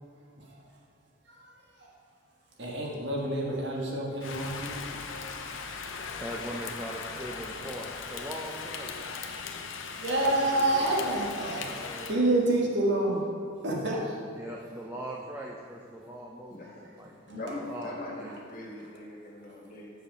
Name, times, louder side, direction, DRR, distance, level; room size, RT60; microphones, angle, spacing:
voice 1, 2.6-4.7 10.0-11.7 12.1-13.2 13.6-14.2, right 1 dB, 55° right, -2 dB, 1.5 m, -28 dB
Rain, 4.2-12.2, left 5 dB, 70° left, 0.7 m, -39 dB
voice 2, 6.2-8.9 10.2-11.2 11.6-12.3 13.7-14.1 14.4-17.1 17.7-18.3, right 1 dB, 10° right, -2 dB, 0.5 m, -41 dB
voice 3, 17.0-19.9, left 1 dB, 40° left, -3 dB, 1.6 m, -40 dB
7.4 x 6.5 x 5.3 m, 2.2 s
head